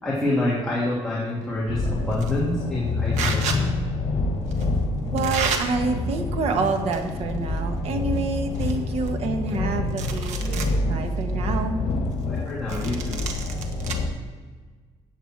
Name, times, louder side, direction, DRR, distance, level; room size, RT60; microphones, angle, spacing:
voice 1, 0.0-3.5 12.3-13.3, left 1 dB, 5° left, -8 dB, 2.9 m, -27 dB
sound 1, 1.7-14.1, left 3 dB, 70° left, 2.1 m, -27 dB
sound 2, 2.1-2.4 3.1-3.6 4.5-4.7 5.2-5.6 6.5-7.2 7.5-7.6 8.1-8.2 8.5-9.6 9.9-10.7 11.2-11.3 12.7-13.9, right 6 dB, 85° right, 1.5 m, -31 dB
voice 2, 5.1-11.8, right 4 dB, 60° right, 5 dB, 1.5 m, -27 dB
14.0 x 9.1 x 4.7 m, 1.4 s
cardioid pair, 165°, 12 cm